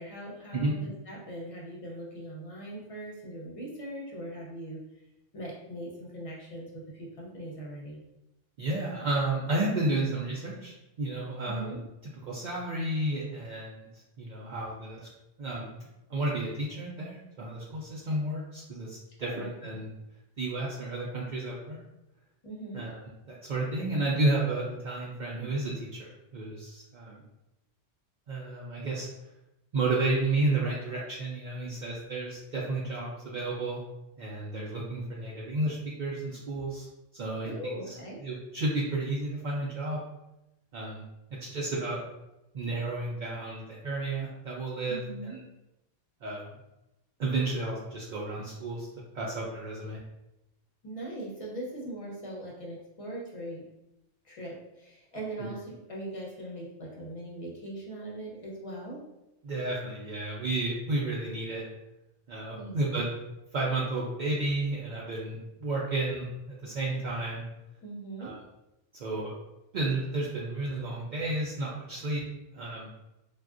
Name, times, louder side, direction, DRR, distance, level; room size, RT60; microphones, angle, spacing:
voice 1, 0.0-4.8 5.3-8.0 11.5-11.8 19.2-19.8 22.4-22.8 37.4-38.2 44.9-45.4 50.8-53.6 54.2-59.0 62.5-63.0 67.8-68.3, right 1 dB, 35° left, -3 dB, 0.7 m, -40 dB
voice 2, 8.6-11.7 12.2-13.9 14.2-15.0 15.4-15.7 16.1-19.9 20.4-21.8 22.7-23.0 23.3-27.2 28.3-29.1 29.7-33.8 34.2-36.9 37.1-37.9 38.2-40.0 40.7-41.0 41.5-42.0 42.5-45.4 46.2-46.4 47.2-48.9 49.1-50.0 55.4-55.5 59.4-61.6 62.3-63.1 63.5-67.4 68.2-68.4 68.9-69.3 69.7-72.2 72.5-72.9, right 2 dB, 65° right, -5 dB, 0.4 m, -32 dB
3.4 x 2.3 x 2.5 m, 0.92 s
omnidirectional pair, 1.3 m